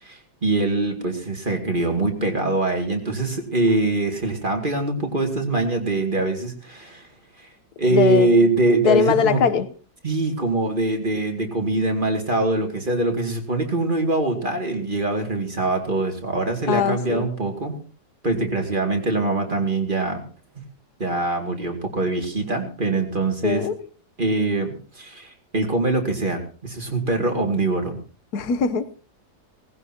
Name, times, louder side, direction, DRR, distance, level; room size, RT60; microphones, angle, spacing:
voice 1, 0.0-7.1 7.4-7.5 7.8-9.4 10.0-17.7 18.2-20.2 20.6-20.7 21.0-23.7 24.2-28.0, right 2 dB, 30° right, 3 dB, 2.5 m, -23 dB
voice 2, 7.9-8.3 8.8-9.7 16.7-17.3 23.4-23.8 28.3-29.0, left 7 dB, 70° left, 12 dB, 1.5 m, -21 dB
19.0 x 16.0 x 2.9 m, 0.40 s
omnidirectional pair, 1.7 m